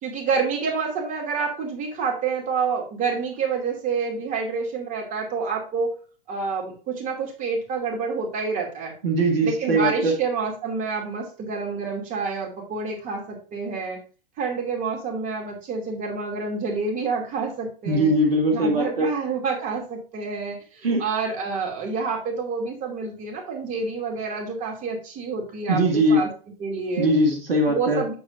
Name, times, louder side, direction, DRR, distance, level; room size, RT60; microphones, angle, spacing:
voice 1, 0.0-6.0 6.3-8.9 9.4-14.0 14.4-18.1 18.5-26.3 26.6-27.1 27.6-28.1, right 5 dB, 25° right, 0 dB, 2.5 m, -28 dB
voice 2, 9.0-10.1 17.9-19.1 20.8-21.0 25.7-26.2 27.0-28.0, right 1 dB, 80° right, 1 dB, 2.0 m, -21 dB
7.9 x 7.1 x 2.5 m, 0.37 s
hypercardioid pair, 115°, 29 cm